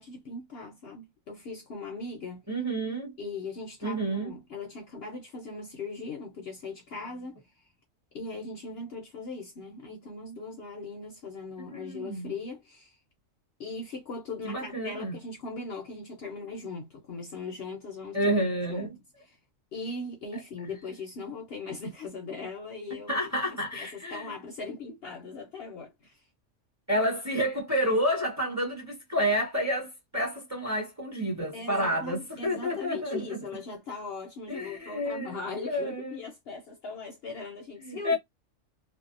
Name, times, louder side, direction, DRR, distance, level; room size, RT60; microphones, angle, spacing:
voice 1, 0.0-2.4 3.2-7.6 8.1-13.0 13.6-18.3 18.7-18.9 19.2-19.4 19.7-26.2 31.5-38.2, left 3 dB, 60° left, 0.7 m, -39 dB
voice 2, 2.5-3.1 3.8-4.3 11.7-12.3 14.4-15.1 18.1-18.9 23.1-24.3 26.9-33.2 34.5-35.4 35.7-36.2 37.8-38.2, equal, 15° right, 0.8 m, -29 dB
2.7 x 2.0 x 2.4 m
omnidirectional pair, 1.4 m